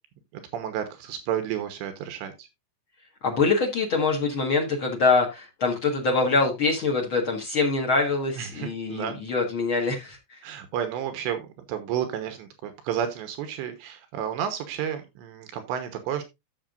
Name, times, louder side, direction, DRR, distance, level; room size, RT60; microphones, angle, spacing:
voice 1, 0.3-2.5 8.4-9.2 10.4-16.2, right 9 dB, 80° right, 3.2 m, -31 dB
voice 2, 3.2-10.4, left 4 dB, 70° left, 1.2 m, -24 dB
13.5 x 6.6 x 2.5 m
omnidirectional pair, 5.2 m